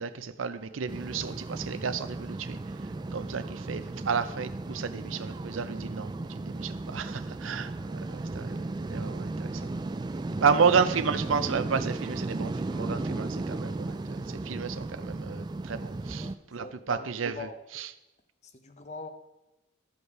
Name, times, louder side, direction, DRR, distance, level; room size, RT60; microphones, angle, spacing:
voice 1, 0.0-2.6 3.1-9.7 10.4-17.9, right 6 dB, 80° right, 12 dB, 0.6 m, -31 dB
sound 1, 0.9-16.3, right 2 dB, 20° right, 0.3 m, -35 dB
voice 2, 16.6-17.1 17.4-17.6 18.5-19.1, left 3 dB, 35° left, 8 dB, 0.8 m, -41 dB
13.0 x 5.4 x 4.7 m, 1.0 s
head